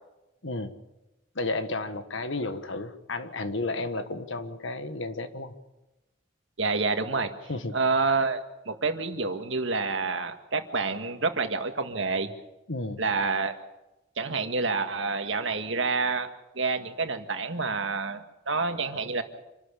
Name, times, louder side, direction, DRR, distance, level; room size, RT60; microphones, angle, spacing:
voice 1, 0.4-0.8 1.3-5.6 7.5-7.7 12.7-13.0, left 2 dB, 75° left, 10 dB, 1.5 m, -32 dB
voice 2, 6.6-7.3 7.7-12.3 13.0-13.6 14.2-16.3 16.6-19.2, right 4 dB, 75° right, 7 dB, 1.8 m, -28 dB
26.5 x 12.5 x 8.6 m, 1.0 s
head